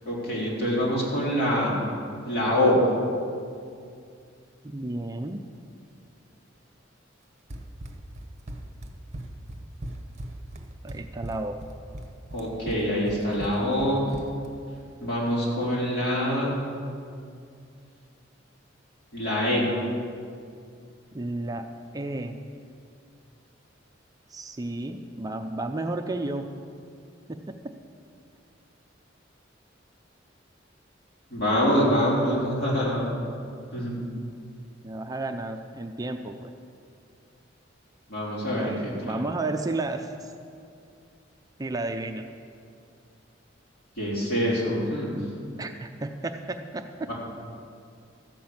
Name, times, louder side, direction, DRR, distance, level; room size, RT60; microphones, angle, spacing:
voice 1, 0.1-1.7 2.2-2.8 12.3-14.1 15.0-16.5 19.1-19.7 31.3-33.0 33.7-34.0 38.1-39.1 44.0-45.1 47.1-47.2, equal, 60° left, -5 dB, 3.7 m, -25 dB
voice 2, 4.6-5.4 10.8-11.6 21.1-21.7 21.9-22.4 24.3-26.5 27.3-27.7 34.8-36.5 38.5-40.3 41.6-42.3 45.6-47.1, right 2 dB, 20° right, 5 dB, 0.5 m, -32 dB
Run, 7.5-14.5, right 1 dB, 35° right, 1.0 m, -39 dB
13.5 x 6.1 x 8.6 m, 2.4 s
head